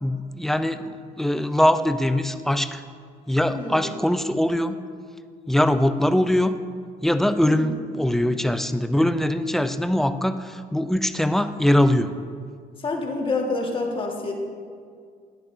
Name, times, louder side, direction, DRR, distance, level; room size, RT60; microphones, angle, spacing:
voice 1, 0.0-2.8 3.3-4.8 5.5-6.6 7.0-12.1, left 1 dB, ahead, 10 dB, 0.4 m, -22 dB
voice 2, 3.5-3.9 7.4-7.7 12.8-14.3, left 3 dB, 30° left, 0 dB, 1.5 m, -28 dB
11.0 x 10.5 x 2.6 m, 2.1 s
cardioid pair, 110°, 17 cm